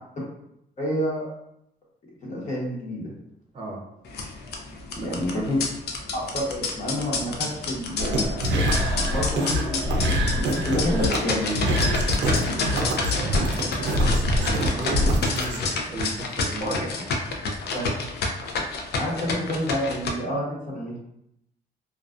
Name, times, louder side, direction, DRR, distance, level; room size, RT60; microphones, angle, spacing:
voice 1, 0.8-1.2 2.2-3.1 4.9-5.6 6.1-8.3 8.9-12.1 16.6-16.8 17.7-18.2 18.9-21.0, equal, 45° left, -5 dB, 1.0 m, -29 dB
sound 1, 4.1-20.1, left 3 dB, 65° left, 0.5 m, -29 dB
voice 2, 4.9-5.6 12.1-16.9, right 2 dB, 30° right, 0 dB, 0.6 m, -36 dB
sound 2, 8.0-15.6, equal, 90° right, 0.5 m, -24 dB
2.3 x 2.3 x 2.4 m, 0.78 s
cardioid pair, 95°, 18 cm